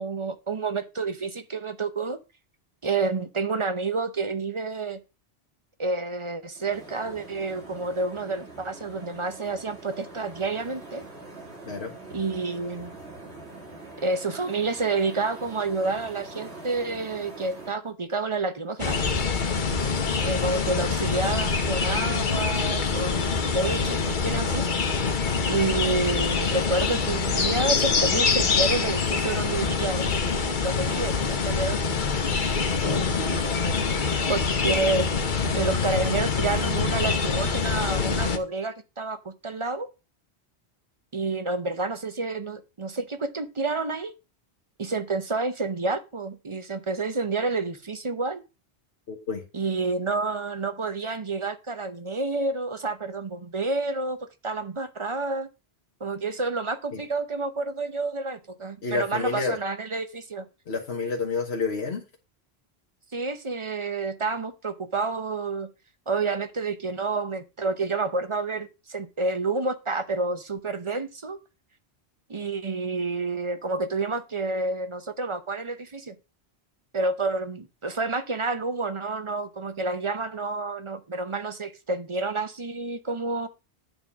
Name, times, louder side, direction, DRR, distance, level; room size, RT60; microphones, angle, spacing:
voice 1, 0.0-2.2 2.8-5.0 5.8-11.0 12.1-12.9 14.0-19.1 20.2-24.7 25.4-30.1 30.6-31.8 32.8-33.5 34.3-35.1 35.5-39.9 41.1-44.1 44.8-48.4 49.5-55.5 56.0-60.4 63.1-65.7 66.1-71.4 72.3-76.1 76.9-83.5, right 3 dB, 35° right, 0.7 m, -29 dB
sound 1, 6.5-17.7, right 2 dB, 85° right, 2.8 m, -43 dB
sound 2, 18.8-38.4, left 5 dB, 50° left, 1.0 m, -25 dB
voice 2, 49.1-49.4 56.9-57.0 58.8-59.6 60.7-62.0, left 4 dB, 75° left, 1.5 m, -29 dB
9.0 x 3.9 x 7.0 m
omnidirectional pair, 1.1 m